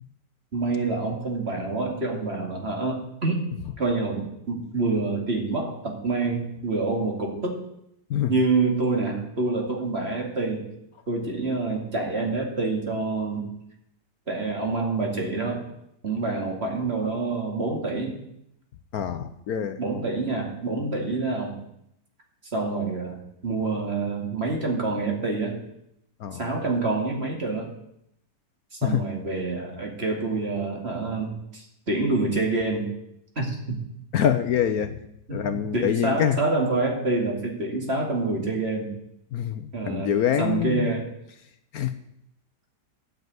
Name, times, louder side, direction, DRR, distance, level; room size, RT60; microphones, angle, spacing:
voice 1, 0.5-3.5 3.8-7.6 8.3-10.7 11.1-13.5 14.3-15.7 16.0-18.2 19.8-21.6 22.5-25.6 26.4-27.7 28.8-32.9 33.4-33.8 35.3-38.9 39.7-40.1 40.4-41.1, right 3 dB, 35° right, 1 dB, 2.6 m, -27 dB
voice 2, 18.9-19.8 26.2-26.4 28.8-29.0 34.1-35.0 35.3-36.4 39.3-40.9 41.7-41.9, left 9 dB, 65° left, 10 dB, 1.1 m, -25 dB
12.0 x 6.7 x 9.4 m, 0.79 s
omnidirectional pair, 1.8 m